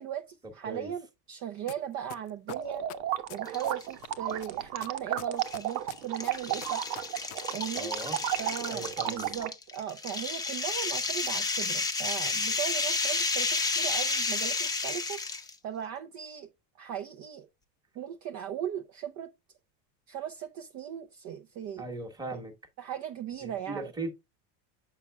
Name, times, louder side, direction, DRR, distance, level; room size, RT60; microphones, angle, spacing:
voice 1, 0.0-2.8 3.3-6.9 7.5-7.9 8.4-15.2 15.6-16.5 16.8-17.5 18.0-19.3 20.1-21.9 22.3-22.4 22.8-23.9, right 10 dB, 35° right, 0.6 m, -38 dB
sound 1, 1.7-1.8 2.1-4.1 4.4-7.4 7.6-7.7, left 17 dB, 65° left, 0.7 m, -44 dB
sound 2, 2.5-9.5, right 12 dB, 85° right, 1.2 m, -33 dB
sound 3, 3.4-3.9 4.3-4.4 5.4-15.5, left 3 dB, 10° left, 0.7 m, -31 dB
voice 2, 7.8-8.2 8.7-9.3 21.8-22.5 23.4-24.1, right 2 dB, 10° right, 1.2 m, -38 dB
7.4 x 5.8 x 2.3 m
supercardioid pair, 140°, 49 cm